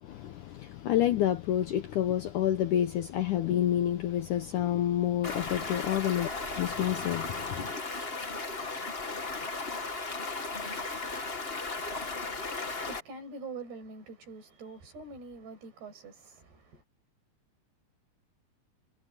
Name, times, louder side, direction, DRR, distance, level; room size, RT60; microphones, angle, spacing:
voice 1, 0.0-6.3 6.6-7.7, left 11 dB, 75° left, 1.9 m, -28 dB
Stream, 5.2-13.0, left 3 dB, 50° left, 0.7 m, -36 dB
voice 2, 12.5-16.8, right 3 dB, 80° right, 9.3 m, -45 dB
omnidirectional pair, 4.6 m